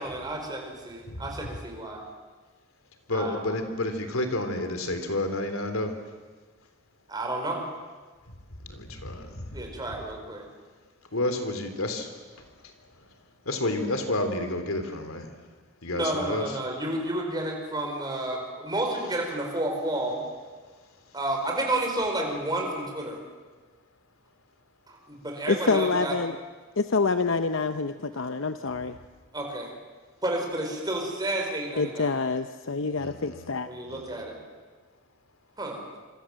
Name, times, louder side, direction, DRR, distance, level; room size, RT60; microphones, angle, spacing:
voice 1, 0.0-2.0 3.1-3.4 7.1-7.7 9.5-10.5 15.9-20.2 21.1-23.2 24.9-26.1 29.3-29.7 30.2-32.1 33.7-34.4 35.6-35.8, right 1 dB, 20° right, 1 dB, 5.2 m, -31 dB
voice 2, 3.1-6.0 8.5-9.8 11.1-13.2 13.5-16.6 20.6-21.2 33.0-33.5 33.9-34.2, left 1 dB, 80° left, 7 dB, 3.5 m, -31 dB
voice 3, 25.5-26.4 26.8-29.0 31.8-33.7, left 4 dB, 65° left, 9 dB, 0.8 m, -27 dB
26.0 x 25.5 x 7.6 m, 1.4 s
head